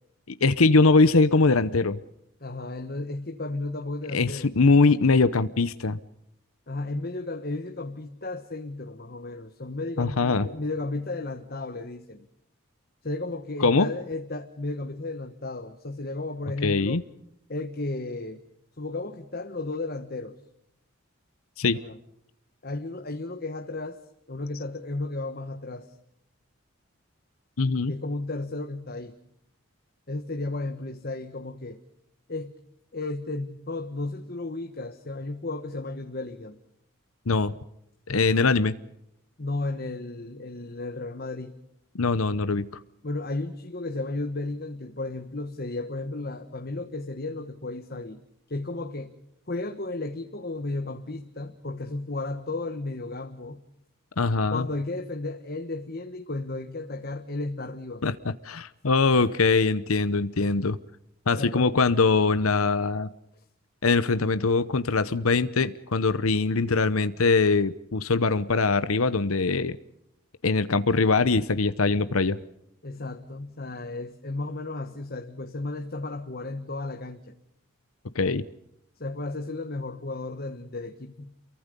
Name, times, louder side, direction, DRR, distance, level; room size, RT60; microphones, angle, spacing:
voice 1, 0.4-2.0 4.1-6.0 10.0-10.5 13.6-13.9 16.6-17.0 21.6-21.8 27.6-27.9 37.3-37.5 38.1-38.7 41.9-42.7 54.2-54.6 58.0-60.8 61.3-63.1 63.8-69.8 70.4-72.4 78.1-78.4, left 3 dB, 80° left, 13 dB, 0.9 m, -22 dB
voice 2, 2.4-4.5 6.7-12.3 13.0-17.0 17.5-18.4 18.8-20.4 21.7-22.0 22.6-24.0 24.3-25.9 27.9-29.1 30.1-31.8 32.3-32.5 32.9-36.6 39.4-41.5 43.0-48.2 48.5-49.2 49.5-53.6 54.5-58.0 61.4-61.8 72.8-77.2 79.0-81.3, left 2 dB, 45° left, 6 dB, 1.3 m, -34 dB
29.0 x 23.0 x 5.3 m, 0.80 s
head